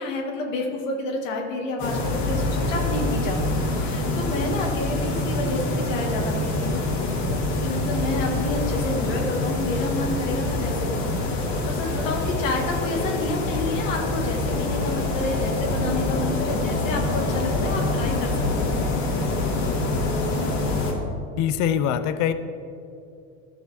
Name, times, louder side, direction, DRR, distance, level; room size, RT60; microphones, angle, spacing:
voice 1, 0.0-6.8 7.5-18.4, left 2 dB, 85° left, 1 dB, 1.5 m, -29 dB
sound 1, 1.8-20.9, left 2 dB, 65° left, 1.9 m, -25 dB
voice 2, 21.4-22.3, left 9 dB, 50° left, 11 dB, 0.5 m, -23 dB
13.0 x 6.3 x 2.7 m, 2.5 s
supercardioid pair, 100°, 38 cm